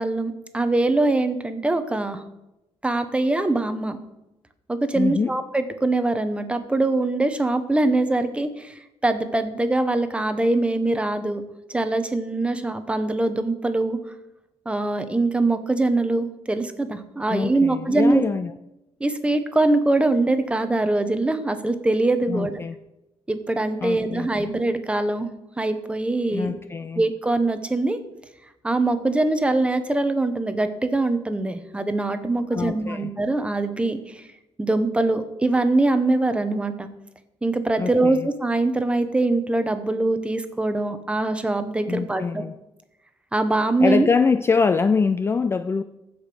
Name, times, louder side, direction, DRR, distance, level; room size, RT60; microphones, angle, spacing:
voice 1, 0.0-2.2 2.8-4.0 4.7-11.4 11.7-14.0 14.7-18.2 19.0-22.6 23.3-25.3 25.6-26.5 27.0-28.0 28.6-34.3 34.6-36.9 37.4-42.4 43.3-44.1, right 2 dB, 10° right, 9 dB, 0.8 m, -23 dB
voice 2, 4.9-5.3 17.3-18.5 22.3-22.7 23.8-24.5 26.3-27.0 32.5-33.1 37.8-38.3 41.9-42.5 43.8-45.8, left 5 dB, 25° left, 11 dB, 0.3 m, -24 dB
15.0 x 5.2 x 6.0 m, 0.92 s
wide cardioid pair, 155°, 11 cm